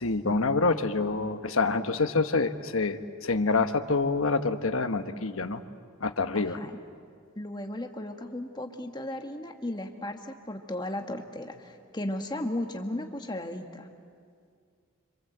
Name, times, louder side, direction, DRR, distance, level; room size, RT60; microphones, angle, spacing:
voice 1, 0.0-5.6 6.0-6.6, left 3 dB, 75° left, 8 dB, 1.2 m, -27 dB
voice 2, 6.3-6.7 7.3-13.9, left 1 dB, 20° left, 4 dB, 1.6 m, -35 dB
27.0 x 26.5 x 8.0 m, 2.2 s
head